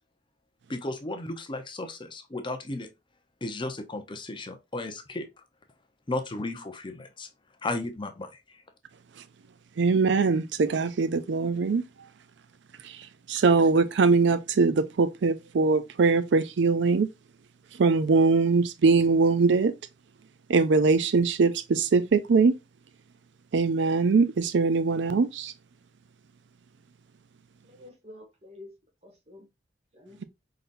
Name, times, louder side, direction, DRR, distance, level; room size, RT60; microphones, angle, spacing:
voice 1, 0.7-2.9 3.4-5.3 6.1-7.3 7.6-8.6, left 2 dB, 25° left, 0.7 m, -34 dB
voice 2, 9.8-11.8 12.9-17.1 17.8-19.7 20.5-22.5 23.5-25.5, right 4 dB, 75° right, 0.4 m, -22 dB
voice 3, 27.6-28.7 29.0-29.5 29.9-30.2, left 2 dB, 35° right, 1.8 m, -49 dB
5.3 x 3.9 x 2.6 m
head